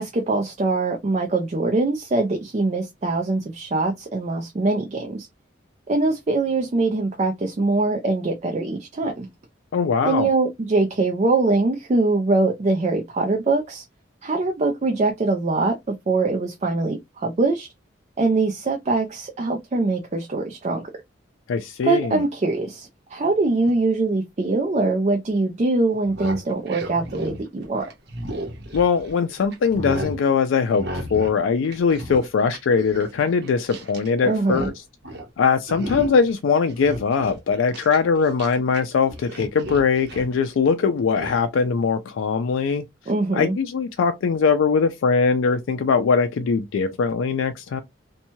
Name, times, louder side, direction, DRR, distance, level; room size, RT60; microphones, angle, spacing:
voice 1, 0.0-5.3 5.9-9.3 10.0-13.8 14.2-17.7 18.2-20.8 21.8-27.9 34.2-34.7 43.1-43.6, right 3 dB, 35° right, 0.4 m, -23 dB
voice 2, 9.7-10.3 21.5-22.2 28.7-34.7 35.4-42.8 43.3-47.8, left 5 dB, 90° left, 0.4 m, -21 dB
sound 1, 25.9-29.2 29.5-30.2 30.8-31.4 31.6-34.1 34.3-34.8 35.0-35.3 35.7-36.3 36.7-38.8 39.1-40.3 41.2-41.4, right 1 dB, 60° right, 0.8 m, -34 dB
2.9 x 2.2 x 2.6 m
head